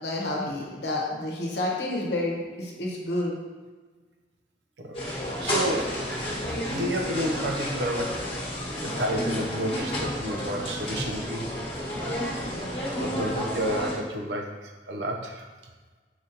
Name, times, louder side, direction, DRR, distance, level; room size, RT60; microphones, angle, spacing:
voice 1, 0.0-3.3, left 1 dB, 70° left, -2 dB, 0.9 m, -29 dB
sound 1, 4.9-13.9, equal, 30° left, 1.2 m, -31 dB
voice 2, 5.4-6.0 6.7-8.2 8.8-11.5 13.0-15.5, right 1 dB, 80° right, 2 dB, 0.6 m, -30 dB
4.7 x 2.8 x 3.8 m, 1.4 s
head